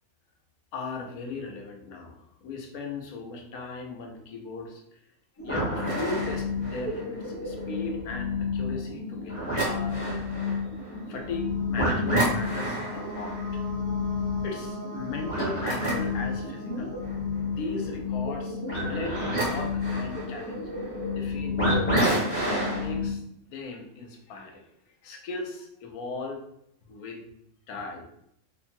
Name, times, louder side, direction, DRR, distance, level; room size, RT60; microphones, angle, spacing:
voice 1, 0.7-5.0 5.4-10.2 11.1-13.6 14.4-20.6 21.1-26.4 26.9-27.2 27.7-28.1, left 3 dB, 85° left, 2 dB, 1.1 m, -38 dB
sound 1, 5.4-23.1, left 2 dB, 10° left, 0.9 m, -29 dB
sound 2, 10.6-18.3, right 3 dB, 65° right, 0.4 m, -43 dB
2.8 x 2.6 x 2.6 m, 0.76 s
omnidirectional pair, 1.5 m